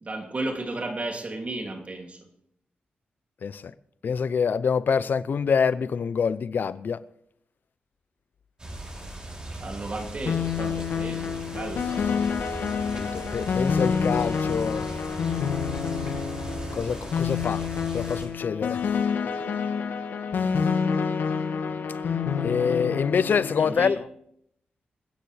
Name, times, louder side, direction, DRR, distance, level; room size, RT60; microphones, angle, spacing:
voice 1, 0.0-2.2 9.6-12.2 23.6-24.0, right 2 dB, 40° right, 2.7 m, -34 dB
voice 2, 3.4-3.7 4.0-7.0 13.0-14.9 16.7-17.6 17.9-18.8 22.4-24.0, left 6 dB, 65° left, 0.6 m, -26 dB
sound 1, 8.6-18.3, right 1 dB, 25° right, 6.0 m, -38 dB
sound 2, 10.3-23.8, left 6 dB, 90° left, 1.6 m, -28 dB
27.0 x 9.4 x 3.4 m
cardioid pair, 75°, 3 cm